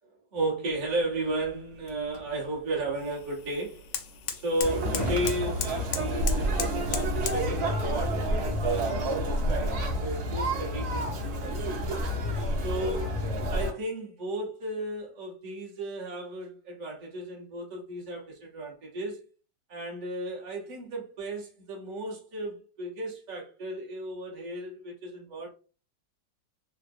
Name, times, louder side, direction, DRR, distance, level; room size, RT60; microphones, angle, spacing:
voice 1, 0.1-3.9 4.3-11.8 12.6-13.2 13.5-19.2 19.7-25.5, right 2 dB, 30° right, 0.9 m, -34 dB
sound 1, 0.7-7.5, left 6 dB, 80° left, 1.3 m, -38 dB
Conversation, 4.6-13.7, equal, 65° right, 1.2 m, -29 dB
3.5 x 2.2 x 2.5 m
omnidirectional pair, 2.0 m